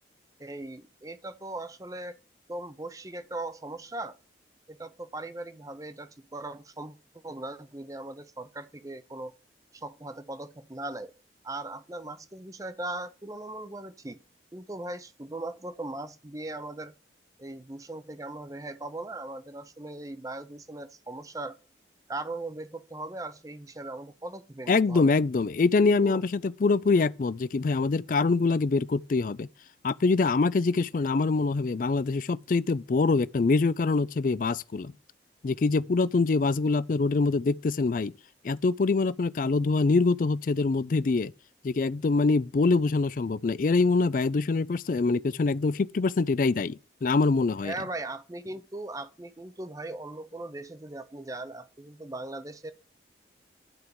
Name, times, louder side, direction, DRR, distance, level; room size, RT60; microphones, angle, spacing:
voice 1, 0.4-2.2 2.5-4.2 4.7-7.0 7.2-9.3 9.7-11.1 11.4-14.2 14.5-16.9 17.4-21.6 22.1-25.1 25.8-26.2 47.6-52.7, right 2 dB, 20° right, 0.6 m, -39 dB
voice 2, 24.7-29.5 29.8-34.9 35.4-38.1 38.4-41.3 41.6-47.7, left 3 dB, 45° left, 0.4 m, -24 dB
10.5 x 4.6 x 6.9 m
head